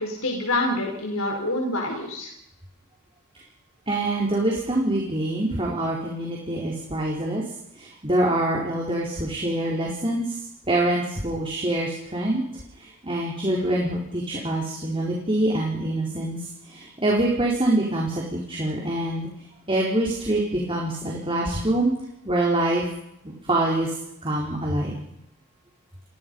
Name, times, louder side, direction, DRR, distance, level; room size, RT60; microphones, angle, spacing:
voice 1, 0.0-2.3, left 1 dB, 80° left, 2 dB, 4.8 m, -26 dB
voice 2, 3.9-7.4 7.8-10.4 10.7-12.4 12.8-19.3 19.7-21.9 22.2-22.8 23.2-23.9 24.2-24.9, right 1 dB, 25° right, -3 dB, 4.5 m, -25 dB
29.5 x 23.0 x 5.6 m, 0.80 s
head